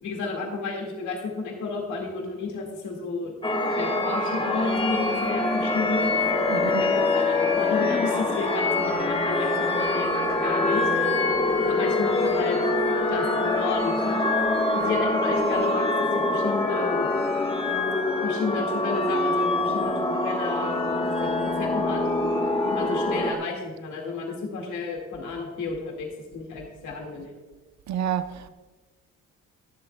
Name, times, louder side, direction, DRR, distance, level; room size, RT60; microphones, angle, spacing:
voice 1, 0.0-3.3 3.8-6.1 6.5-10.9 11.7-12.6 13.1-14.2 14.7-17.1 18.2-22.0 22.6-26.1 26.3-27.3, left 4 dB, 75° left, 2.1 m, -32 dB
sound 1, 3.4-23.3, left 2 dB, 20° left, 1.4 m, -24 dB
voice 2, 6.5-6.9 27.9-28.5, right 9 dB, 65° right, 0.7 m, -29 dB
22.0 x 7.5 x 2.3 m
cardioid pair, 90°, 30 cm